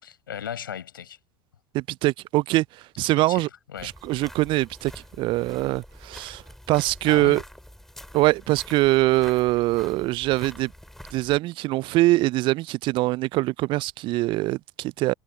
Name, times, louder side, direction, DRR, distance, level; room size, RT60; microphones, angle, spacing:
voice 1, 0.0-1.2 3.2-3.9 7.0-7.4, left 9 dB, 80° left, 4.7 m, -36 dB
voice 2, 1.7-2.6 3.0-3.5 3.8-4.9 5.2-6.4 6.7-7.4 8.1-10.7 11.1-15.1, right 19 dB, 45° right, 0.3 m, -23 dB
sound 1, 3.8-11.4, left 1 dB, 5° left, 5.0 m, -46 dB
hypercardioid pair, 75°, 11 cm